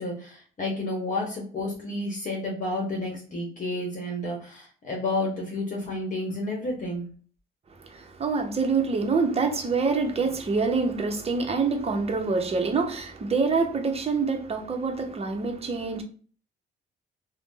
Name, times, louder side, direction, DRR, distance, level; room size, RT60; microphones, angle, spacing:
voice 1, 0.0-7.1, left 2 dB, 40° left, 0.9 m, -31 dB
voice 2, 7.8-16.0, right 4 dB, 30° right, 0.6 m, -26 dB
2.5 x 2.0 x 3.7 m
cardioid pair, 90°, 20 cm